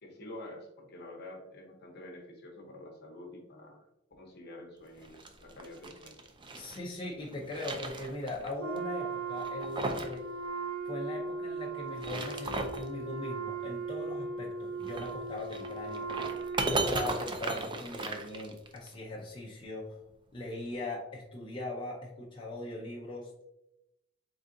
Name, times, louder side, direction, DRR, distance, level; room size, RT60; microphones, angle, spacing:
voice 1, 0.0-3.8 4.2-6.2, left 1 dB, 55° left, 1 dB, 0.9 m, -48 dB
sound 1, 5.0-6.8 7.2-8.5 8.8-8.9 9.4-10.2 10.4-10.5 11.8-12.9 14.8-18.9, right 2 dB, 25° right, 0.4 m, -36 dB
voice 2, 6.5-10.2 10.8-16.1 16.6-20.0 20.3-23.5, left 2 dB, 25° left, -4 dB, 0.6 m, -40 dB
Wind instrument woodwind instrument, 8.6-17.4, right 3 dB, 85° right, 0.5 m, -38 dB
3.9 x 3.6 x 2.6 m, 0.88 s
head